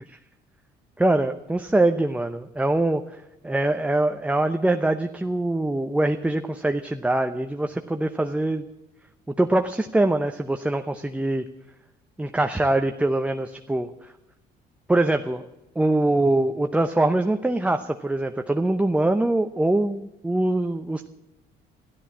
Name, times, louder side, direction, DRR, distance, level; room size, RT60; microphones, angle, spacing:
voice 1, 1.0-8.7 9.4-11.5 12.2-13.9 14.9-15.4 15.8-21.1, right 2 dB, 5° right, 6 dB, 0.8 m, -23 dB
14.0 x 12.5 x 7.3 m, 0.94 s
cardioid pair, 110°, 17 cm